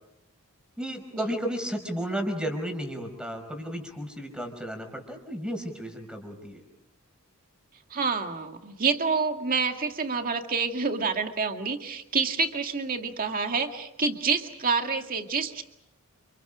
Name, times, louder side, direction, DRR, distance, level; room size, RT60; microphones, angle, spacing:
voice 1, 0.8-6.6, equal, 5° right, 5 dB, 5.3 m, -33 dB
voice 2, 7.9-15.6, right 4 dB, 40° right, 5 dB, 2.1 m, -28 dB
29.5 x 29.0 x 5.0 m, 0.81 s
head